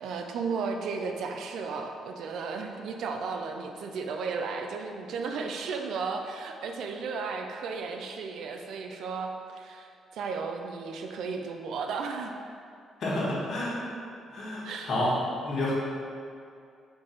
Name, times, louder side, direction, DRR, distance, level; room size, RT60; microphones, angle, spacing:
voice 1, 0.0-12.4 14.6-15.0, right 4 dB, 75° right, 4 dB, 0.4 m, -34 dB
voice 2, 13.0-13.7 14.3-15.1 15.4-15.7, left 1 dB, 65° left, -7 dB, 1.3 m, -29 dB
4.5 x 2.5 x 4.3 m, 2.4 s
cardioid pair, 90°, 0 cm